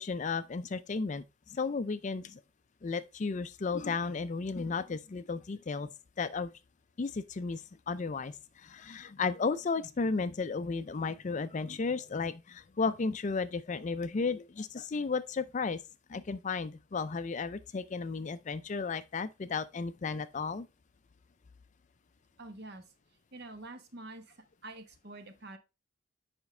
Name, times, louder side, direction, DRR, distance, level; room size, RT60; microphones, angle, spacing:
voice 1, 0.0-2.4 2.8-5.9 6.2-6.5 7.0-15.8 16.1-20.7, left 4 dB, 35° left, 0.4 m, -34 dB
voice 2, 22.4-22.8 23.3-25.6, right 2 dB, 55° right, 1.1 m, -47 dB
7.1 x 5.2 x 3.2 m
head